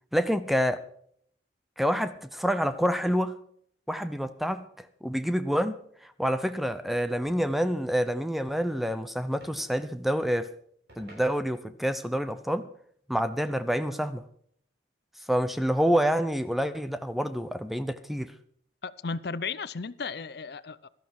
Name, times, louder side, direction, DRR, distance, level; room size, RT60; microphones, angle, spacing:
voice 1, 0.1-0.8 1.8-3.4 3.9-10.5 11.0-12.7 13.1-14.2 15.3-18.3, equal, ahead, 0.7 m, -27 dB
sound 1, 7.3-8.0 9.4-9.8 10.9-11.8, right 1 dB, 60° right, 6.2 m, -53 dB
voice 2, 18.8-20.9, left 4 dB, 60° left, 0.6 m, -35 dB
17.0 x 13.0 x 4.7 m
head